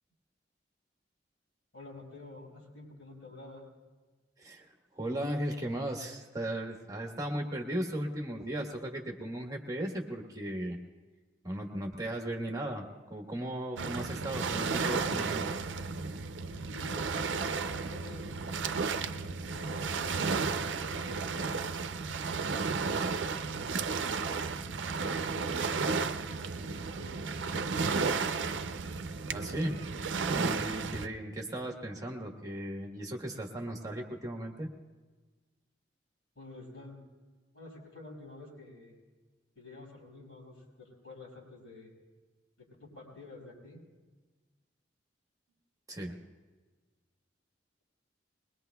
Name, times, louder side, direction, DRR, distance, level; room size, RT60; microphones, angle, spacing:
voice 1, 1.7-3.7 16.5-17.2 17.6-20.3 20.7-21.5 22.6-24.5 25.0-26.1 26.6-27.6 36.4-37.0 37.5-38.9 39.6-41.9 42.6-43.8, left 2 dB, 85° left, -4 dB, 5.5 m, -50 dB
voice 2, 4.4-4.7 4.9-10.8 11.4-15.6 29.3-29.8 30.3-34.7 45.9-46.2, right 1 dB, 20° right, 1 dB, 1.2 m, -36 dB
Waves surf, 13.8-31.1, right 4 dB, 90° right, 0.5 m, -33 dB
21.5 x 21.5 x 2.3 m, 1.3 s
head